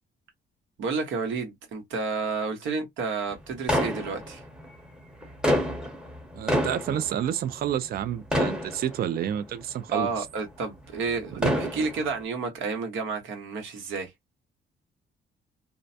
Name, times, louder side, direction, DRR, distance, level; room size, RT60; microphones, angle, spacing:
voice 1, 0.8-4.4 9.9-14.1, right 4 dB, 90° right, 1.1 m, -30 dB
sound 1, 3.7-4.7 5.2-8.0 8.3-9.4 10.0-10.1 11.2-12.2, equal, 5° right, 0.9 m, -27 dB
voice 2, 6.3-10.3 11.4-11.5, right 10 dB, 50° right, 0.4 m, -29 dB
2.4 x 2.1 x 2.6 m
cardioid pair, 120°, 20 cm